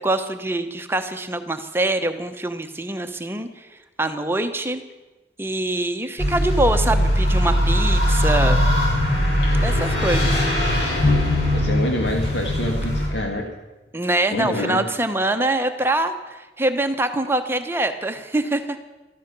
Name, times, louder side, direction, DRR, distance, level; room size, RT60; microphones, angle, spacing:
voice 1, 0.0-3.7 4.0-4.8 5.4-8.6 9.6-10.5 13.9-18.8, right 2 dB, 15° right, 7 dB, 0.9 m, -24 dB
sound 1, 6.2-13.1, left 1 dB, 65° left, 5.7 m, -20 dB
voice 2, 11.5-13.5 14.3-14.9, left 1 dB, 90° left, 2 dB, 2.0 m, -26 dB
14.5 x 14.0 x 6.9 m, 1.1 s
head